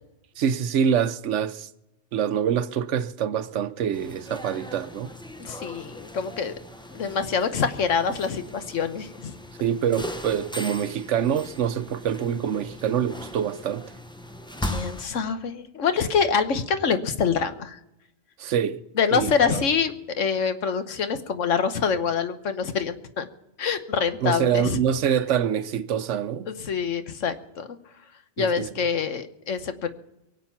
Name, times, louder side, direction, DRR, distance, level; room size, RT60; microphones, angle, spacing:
voice 1, 0.4-1.7 2.1-5.1 9.6-13.9 18.4-18.8 19.1-19.6 24.2-26.5 28.4-28.9, right 8 dB, 75° right, 1.0 m, -25 dB
sound 1, 3.9-15.0, equal, 5° left, 0.7 m, -39 dB
voice 2, 5.4-6.5 6.9-9.3 14.6-17.8 19.0-23.3 23.6-24.8 26.5-27.7 28.4-29.9, left 6 dB, 80° left, 1.4 m, -25 dB
23.5 x 8.0 x 5.8 m
omnidirectional pair, 1.3 m